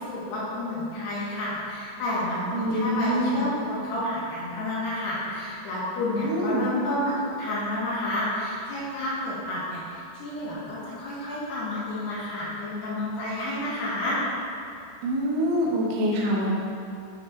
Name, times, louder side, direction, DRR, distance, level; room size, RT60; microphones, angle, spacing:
voice 1, 0.0-14.2, left 1 dB, 65° left, -8 dB, 3.7 m, -30 dB
voice 2, 2.5-3.5 6.2-6.7 15.0-16.5, equal, 85° right, -4 dB, 3.5 m, -25 dB
10.5 x 6.3 x 3.7 m, 2.6 s
omnidirectional pair, 5.3 m